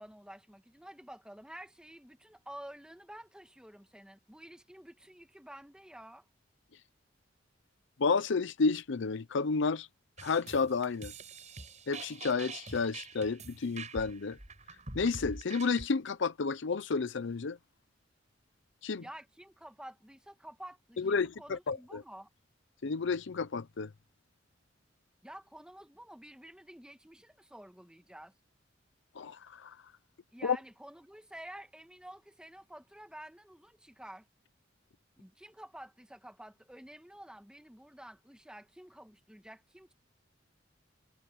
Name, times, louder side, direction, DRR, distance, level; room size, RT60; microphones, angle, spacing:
voice 1, 0.0-6.3 19.0-22.3 25.2-28.3 30.3-34.3 35.2-39.9, right 1 dB, 5° right, 1.5 m, -50 dB
voice 2, 8.0-9.9 10.2-11.1 11.9-14.4 14.9-17.6 18.8-19.0 21.0-22.0 22.8-23.9 29.2-29.8 30.4-30.6, left 4 dB, 70° left, 0.6 m, -31 dB
sound 1, 10.2-15.9, right 3 dB, 40° right, 5.5 m, -46 dB
head